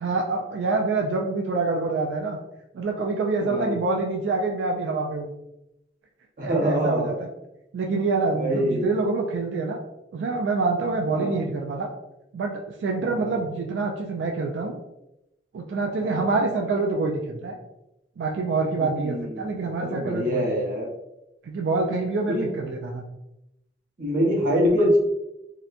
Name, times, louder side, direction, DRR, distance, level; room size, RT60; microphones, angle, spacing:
voice 1, 0.0-2.4 2.7-5.3 6.4-7.3 7.7-9.8 10.1-11.9 12.3-14.8 15.5-17.6 18.2-20.5 21.4-23.0, right 3 dB, 90° right, 1 dB, 0.3 m, -26 dB
voice 2, 3.4-3.8 6.4-7.1 8.3-8.9 11.1-11.4 13.0-13.4 16.0-16.3 18.8-20.9 22.3-22.5 24.0-25.0, equal, 50° right, -4 dB, 0.8 m, -25 dB
2.8 x 2.1 x 2.3 m, 0.89 s
head